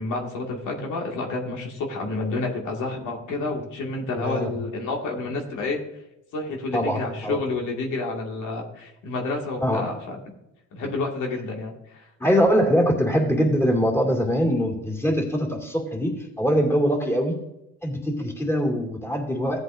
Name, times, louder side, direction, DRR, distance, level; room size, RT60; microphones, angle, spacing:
voice 1, 0.0-5.8 6.3-10.2 10.7-12.1, left 3 dB, 85° left, 0 dB, 2.0 m, -29 dB
voice 2, 4.2-4.5 6.7-7.4 9.6-9.9 12.2-17.3 17.8-19.6, equal, 10° left, 1 dB, 2.4 m, -23 dB
15.5 x 8.1 x 2.6 m, 0.88 s
cardioid pair, 90°, 30 cm